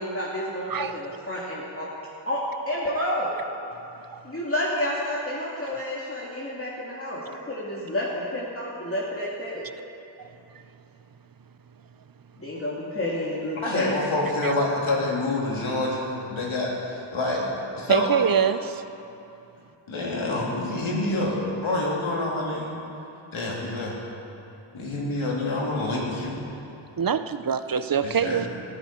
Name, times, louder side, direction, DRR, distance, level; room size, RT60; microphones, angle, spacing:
voice 1, 0.0-1.9 2.3-2.4 2.7-3.3 4.2-9.6 12.4-14.0, left 1 dB, 30° left, -6 dB, 2.3 m, -30 dB
voice 2, 0.7-1.0 4.1-4.2 10.2-10.3 14.4-14.5 17.9-18.8 27.0-28.5, right 7 dB, 45° right, 11 dB, 0.7 m, -24 dB
voice 3, 13.6-17.4 17.8-18.2 19.9-22.8 23.3-24.0 24.7-26.4 28.0-28.5, left 2 dB, 80° left, -3 dB, 3.2 m, -27 dB
18.5 x 13.5 x 4.5 m, 2.7 s
wide cardioid pair, 70°, 48 cm